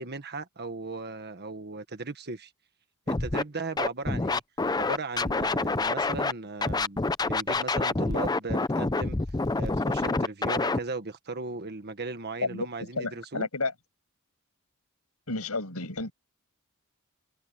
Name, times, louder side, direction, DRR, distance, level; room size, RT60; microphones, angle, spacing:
voice 1, 0.0-2.5 3.1-4.4 4.7-9.2 9.5-13.5, right 3 dB, 50° right, 1.6 m, -37 dB
Scratching (performance technique), 3.1-3.4 3.8-6.3 6.6-10.8, left 3 dB, 20° left, 0.6 m, -27 dB
voice 2, 12.4-13.7 15.3-16.1, left 3 dB, 90° left, 6.4 m, -31 dB
head